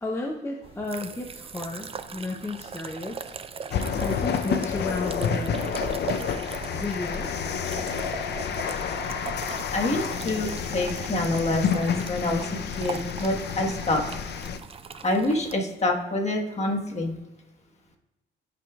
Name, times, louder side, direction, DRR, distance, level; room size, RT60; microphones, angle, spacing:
voice 1, 0.0-3.3 4.0-5.6 6.7-7.3, left 2 dB, 10° left, -1 dB, 0.7 m, -33 dB
sound 1, 0.6-15.6, right 5 dB, 30° right, 0.4 m, -39 dB
sound 2, 3.7-14.6, left 7 dB, 60° left, 0.6 m, -29 dB
voice 2, 9.7-14.0 15.0-17.1, left 2 dB, 35° left, 1 dB, 1.4 m, -27 dB
13.5 x 5.2 x 2.3 m, 1.1 s
cardioid pair, 90°, 20 cm